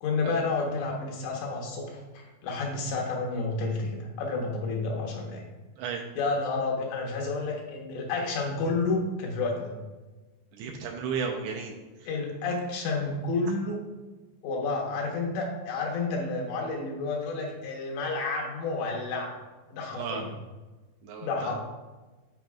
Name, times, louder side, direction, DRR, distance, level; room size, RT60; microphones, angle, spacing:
voice 1, 0.0-5.4 6.2-9.7 12.1-13.8 14.4-19.3 19.7-20.3 21.2-21.6, left 3 dB, 80° left, 0 dB, 3.2 m, -30 dB
voice 2, 10.6-11.7 19.9-20.2 21.0-21.5, right 6 dB, 80° right, 1 dB, 2.4 m, -33 dB
13.0 x 5.2 x 2.3 m, 1.2 s
omnidirectional pair, 5.1 m